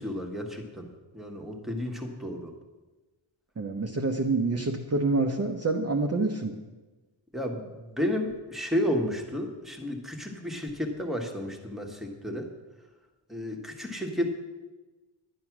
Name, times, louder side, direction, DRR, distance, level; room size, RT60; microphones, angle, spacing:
voice 1, 0.0-2.5 7.3-12.5 13.3-14.3, left 1 dB, ahead, 1 dB, 1.4 m, -32 dB
voice 2, 3.6-6.5, right 3 dB, 30° right, 3 dB, 0.8 m, -27 dB
11.5 x 9.7 x 6.0 m, 1.2 s
wide cardioid pair, 165°, 48 cm